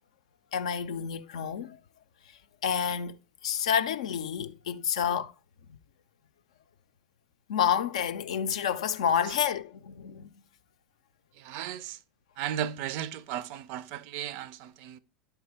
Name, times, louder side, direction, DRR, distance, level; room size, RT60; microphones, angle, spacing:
voice 1, 0.5-1.8 2.6-3.2 3.4-5.3 7.5-10.3, left 8 dB, 65° left, 0.4 m, -29 dB
voice 2, 11.4-12.0 12.4-15.0, right 10 dB, 50° right, 0.4 m, -35 dB
10.5 x 4.5 x 3.4 m
figure-of-eight pair, 75°, 4 cm